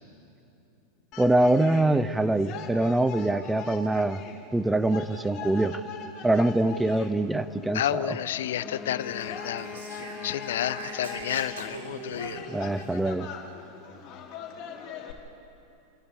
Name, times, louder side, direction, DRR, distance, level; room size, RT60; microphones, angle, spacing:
sound 1, 1.1-15.1, left 6 dB, 45° left, 3.0 m, -42 dB
voice 1, 1.2-4.2 4.5-5.8 6.2-8.2 12.5-13.3, right 1 dB, 10° right, 13 dB, 0.8 m, -24 dB
voice 2, 7.7-12.4, left 11 dB, 70° left, 16 dB, 0.5 m, -31 dB
Wind instrument woodwind instrument, 8.6-12.3, left 5 dB, 15° left, 2.2 m, -43 dB
Speech, 9.0-12.9, right 3 dB, 75° right, 3.2 m, -42 dB
29.0 x 11.5 x 8.3 m, 2.9 s
hypercardioid pair, 90°, 0 cm